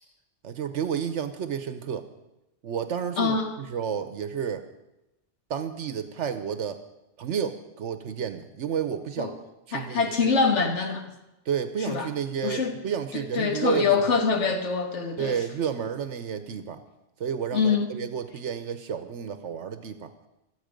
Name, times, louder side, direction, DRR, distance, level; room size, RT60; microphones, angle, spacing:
voice 1, 0.4-2.1 2.6-4.6 5.5-6.8 7.2-9.3 9.7-10.3 11.5-14.2 15.2-16.8 17.2-20.1, right 7 dB, 80° right, 10 dB, 1.1 m, -31 dB
voice 2, 3.2-3.5 9.2-9.3 9.7-11.1 11.8-12.1 12.4-12.8 13.1-15.4 17.5-17.9, left 5 dB, 75° left, 5 dB, 1.8 m, -25 dB
25.0 x 8.3 x 5.2 m, 0.94 s
omnidirectional pair, 1.2 m